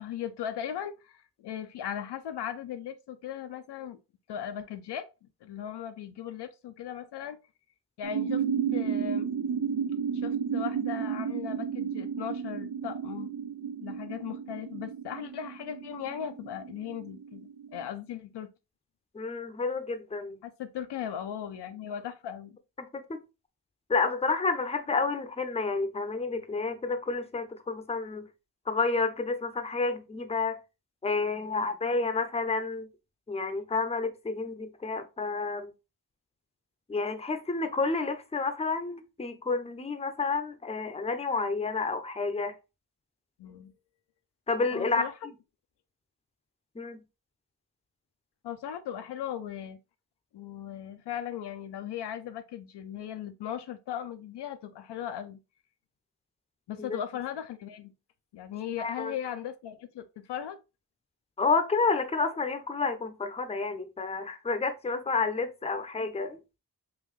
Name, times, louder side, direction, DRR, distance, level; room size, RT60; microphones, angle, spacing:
voice 1, 0.0-4.0 4.3-5.1 5.4-7.4 8.0-8.4 8.7-9.3 10.1-13.3 13.8-18.5 20.4-22.6 43.4-43.7 44.7-45.1 48.4-49.8 50.3-55.4 56.7-57.9 58.3-60.6, left 9 dB, 75° left, 0.5 m, -38 dB
sound 1, 8.0-17.9, right 7 dB, 60° right, 0.6 m, -32 dB
voice 2, 19.1-20.4 22.8-23.2 23.9-28.3 28.7-30.6 31.0-32.9 33.3-35.7 36.9-42.5 44.5-45.0 46.8-47.0 56.8-57.0 58.8-59.1 61.4-66.4, left 4 dB, 15° left, 0.6 m, -30 dB
3.9 x 2.5 x 3.1 m
cardioid pair, 45°, 41 cm